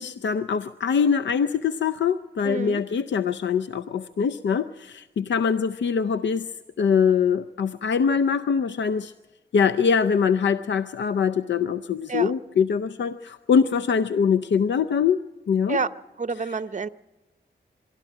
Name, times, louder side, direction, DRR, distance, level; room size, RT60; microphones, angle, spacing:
voice 1, 0.0-6.5 6.8-9.1 9.5-15.2 15.5-15.8 16.4-16.5, left 6 dB, 85° left, 13 dB, 0.6 m, -23 dB
voice 2, 2.4-2.8 12.1-12.3 15.7-15.9 16.2-16.9, right 4 dB, 40° right, 14 dB, 0.8 m, -28 dB
23.5 x 13.0 x 8.9 m, 1.1 s
cardioid pair, 65°, 18 cm